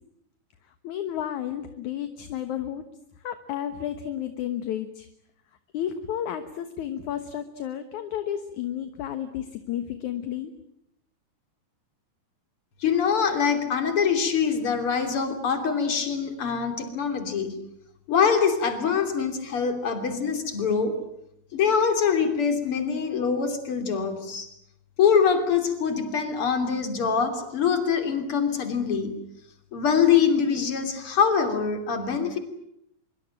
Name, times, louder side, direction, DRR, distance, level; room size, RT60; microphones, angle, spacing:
voice 1, 0.8-2.8 3.2-5.1 5.7-10.5, left 10 dB, 65° left, 9 dB, 2.6 m, -32 dB
voice 2, 12.8-17.6 18.1-21.0 21.5-24.5 25.0-29.1 29.7-32.4, left 6 dB, 40° left, 7 dB, 3.8 m, -24 dB
24.5 x 24.0 x 8.9 m, 0.77 s
omnidirectional pair, 3.9 m